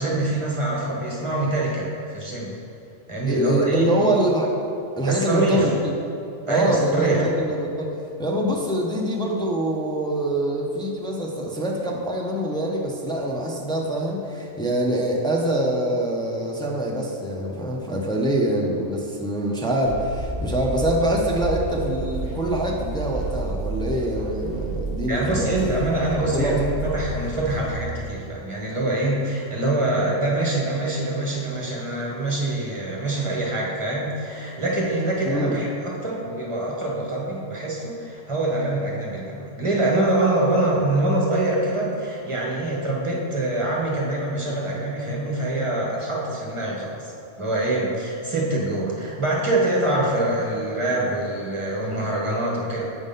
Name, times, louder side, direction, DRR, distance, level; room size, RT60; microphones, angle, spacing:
voice 1, 0.0-2.5 3.1-3.9 5.0-5.7 6.5-7.3 25.1-47.1 47.4-52.8, right 2 dB, 25° right, -3 dB, 1.1 m, -24 dB
voice 2, 3.3-4.5 5.0-5.9 6.5-25.7 26.2-26.7 35.3-35.6, right 1 dB, 5° left, -2 dB, 0.4 m, -25 dB
sound 1, 19.8-27.8, right 2 dB, 75° left, 2.1 m, -31 dB
8.0 x 3.7 x 5.4 m, 2.7 s
omnidirectional pair, 1.3 m